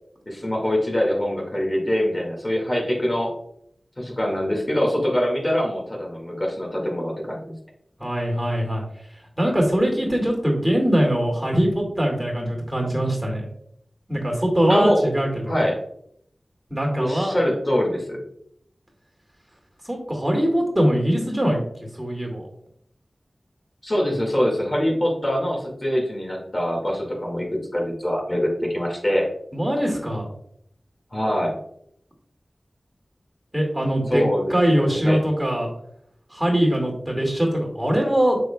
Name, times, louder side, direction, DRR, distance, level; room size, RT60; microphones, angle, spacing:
voice 1, 0.3-3.4 4.0-7.5 14.7-15.1 15.4-15.8 17.0-18.2 23.8-27.5 27.7-29.3 31.1-31.6 34.1-35.2, equal, 35° left, -1 dB, 2.0 m, -24 dB
voice 2, 8.0-8.8 9.4-13.5 14.1-15.6 16.7-17.4 19.9-21.6 22.0-22.5 29.5-30.3 33.5-34.2 34.5-35.7 36.3-38.4, equal, 15° right, 0 dB, 2.2 m, -22 dB
7.1 x 6.0 x 2.3 m, 0.70 s
wide cardioid pair, 45°, 0 cm